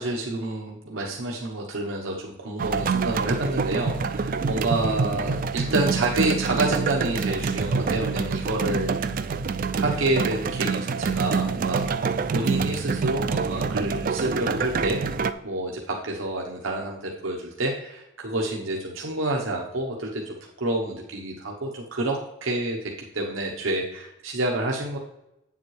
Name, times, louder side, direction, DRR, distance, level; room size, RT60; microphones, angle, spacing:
voice 1, 0.0-9.3 9.7-12.0 12.3-15.0 15.4-25.0, right 2 dB, 85° right, 0 dB, 0.9 m, -28 dB
sound 1, 2.6-15.3, right 5 dB, 45° right, 0.3 m, -26 dB
8.5 x 7.2 x 3.1 m, 0.89 s
head